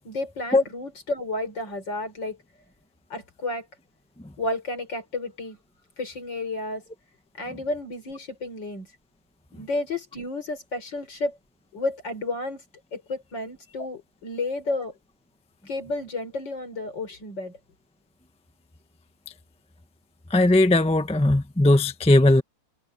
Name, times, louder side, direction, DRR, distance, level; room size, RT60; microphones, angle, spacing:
voice 1, 0.0-2.4 3.1-3.7 4.4-5.6 6.0-6.8 7.4-8.9 9.5-11.4 11.7-12.6 12.9-14.9 15.7-17.6, left 2 dB, 55° left, 5.4 m, -31 dB
voice 2, 20.3-22.4, left 2 dB, 5° left, 0.4 m, -18 dB
omnidirectional pair, 2.3 m